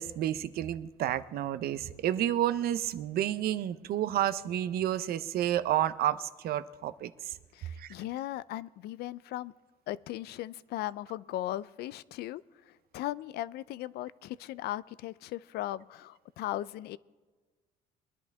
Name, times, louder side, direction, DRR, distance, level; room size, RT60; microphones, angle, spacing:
voice 1, 0.0-7.3 7.8-7.9, right 11 dB, 65° right, 13 dB, 0.6 m, -30 dB
voice 2, 7.5-9.5 9.9-17.0, left 14 dB, 70° left, 18 dB, 0.4 m, -38 dB
22.5 x 11.0 x 3.5 m, 1.3 s
cardioid pair, 110°, 17 cm